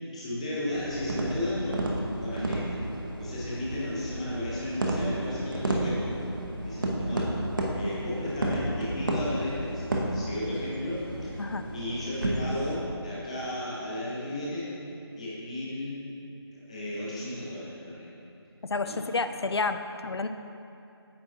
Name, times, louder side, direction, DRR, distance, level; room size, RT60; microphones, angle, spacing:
voice 1, 0.1-2.8 3.2-6.2 6.6-7.3 7.7-11.3 11.7-14.7 15.2-16.0 16.7-18.1 18.8-19.0, left 1 dB, 15° left, -7 dB, 0.8 m, -34 dB
sound 1, 0.7-12.8, right 1 dB, 50° right, 0.8 m, -32 dB
voice 2, 11.4-11.7 18.6-20.3, left 3 dB, 70° left, 9 dB, 0.4 m, -30 dB
8.5 x 5.7 x 2.6 m, 2.7 s
figure-of-eight pair, 160°, 14 cm